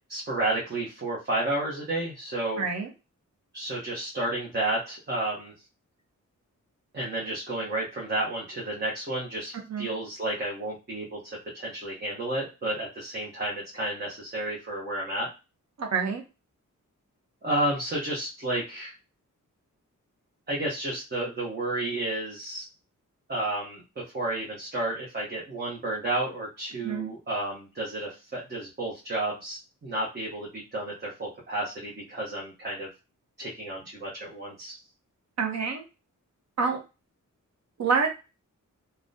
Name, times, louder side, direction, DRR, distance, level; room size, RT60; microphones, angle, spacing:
voice 1, 0.1-2.7 3.5-5.5 6.9-15.3 17.4-18.9 20.5-22.7 23.3-23.8 24.1-32.9 33.4-34.8, right 1 dB, 35° right, -4 dB, 0.9 m, -31 dB
voice 2, 2.6-2.9 9.7-9.9 15.8-16.2 26.8-27.1 35.4-35.8 36.6-36.8 37.8-38.1, right 5 dB, 55° right, 3 dB, 0.8 m, -27 dB
3.6 x 2.2 x 2.6 m, 0.28 s
wide cardioid pair, 170°, 32 cm